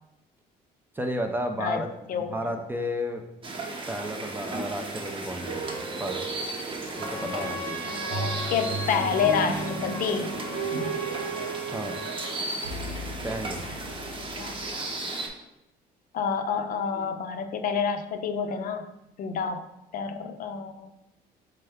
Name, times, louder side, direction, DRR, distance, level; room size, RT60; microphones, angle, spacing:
voice 1, 0.9-3.2 3.9-5.6 6.0-6.2 6.9-7.9 11.7-12.0 13.2-13.8, equal, 10° right, 4 dB, 0.4 m, -32 dB
sound 1, 3.4-15.3, right 2 dB, 30° right, 0.8 m, -35 dB
sound 2, 5.4-14.7, right 4 dB, 85° right, 0.7 m, -36 dB
Trumpet, 6.9-12.4, left 1 dB, 15° left, 1.0 m, -38 dB
voice 2, 7.8-10.3 14.4-14.6 16.1-18.9 19.2-19.7 19.9-20.9, left 6 dB, 55° left, 7 dB, 0.5 m, -28 dB
4.4 x 3.4 x 3.5 m, 0.88 s
cardioid pair, 110°, 17 cm